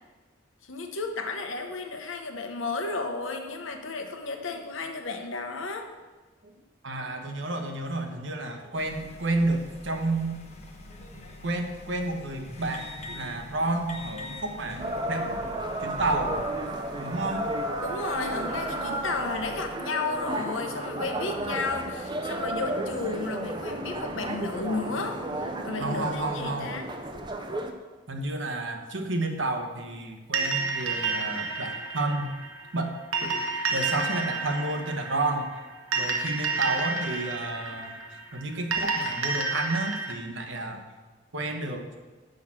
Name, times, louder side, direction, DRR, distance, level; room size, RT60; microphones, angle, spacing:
voice 1, 0.6-5.9 17.8-26.9, left 3 dB, 70° left, 5 dB, 1.0 m, -33 dB
voice 2, 6.8-10.4 11.4-15.5 15.8-16.4 17.0-17.5 23.6-24.1 24.5-26.8 28.1-32.3 32.7-32.9 33.2-33.5 33.7-35.6 36.0-38.0 38.3-40.8 41.3-41.9, right 2 dB, 65° right, 5 dB, 1.0 m, -31 dB
sound 1, 8.7-19.8, left 1 dB, 35° left, 1.0 m, -44 dB
sound 2, 14.8-27.7, right 1 dB, 20° right, 0.6 m, -33 dB
sound 3, 30.3-40.1, right 4 dB, 90° right, 1.2 m, -30 dB
6.4 x 5.8 x 7.3 m, 1.3 s
head